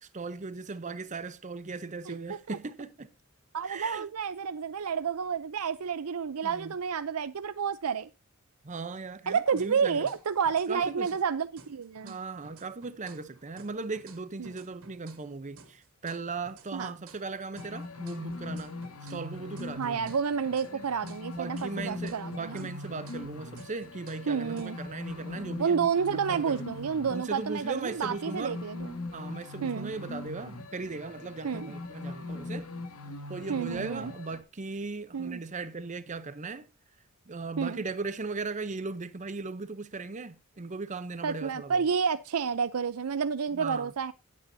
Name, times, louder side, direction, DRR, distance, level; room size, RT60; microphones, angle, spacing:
voice 1, 0.0-3.1 3.6-4.1 6.4-6.7 8.6-10.1 10.7-11.2 12.0-18.8 19.1-20.0 20.7-20.8 21.4-25.8 26.1-26.7 27.1-28.6 29.1-32.7 33.3-36.7 37.3-41.8 43.5-43.9, right 3 dB, 35° right, 0.7 m, -38 dB
voice 2, 2.1-2.6 3.5-8.1 9.3-12.2 14.4-14.5 16.7-16.9 19.8-22.7 24.3-24.8 25.6-28.9 29.6-29.9 31.4-31.7 33.5-34.1 35.1-35.4 37.6-37.8 41.2-44.1, right 6 dB, 85° right, 0.6 m, -30 dB
sound 1, 9.6-11.3 11.6-15.3 15.6-19.3 19.6-23.3 23.6-25.6, right 4 dB, 70° right, 2.5 m, -55 dB
sound 2, 17.5-34.4, left 2 dB, 85° left, 2.3 m, -41 dB
16.5 x 8.6 x 2.7 m
head